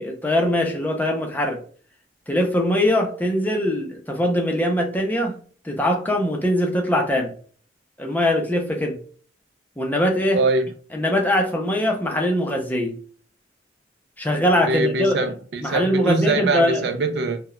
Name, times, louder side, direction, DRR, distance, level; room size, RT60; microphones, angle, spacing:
voice 1, 0.0-1.6 2.3-5.4 5.6-7.3 8.0-9.0 9.8-10.4 10.9-12.9 14.2-15.2 15.6-16.9, left 1 dB, 10° left, 0.5 m, -22 dB
voice 2, 10.3-10.7 14.7-17.4, right 2 dB, 60° right, 0.4 m, -22 dB
3.8 x 2.2 x 2.2 m
head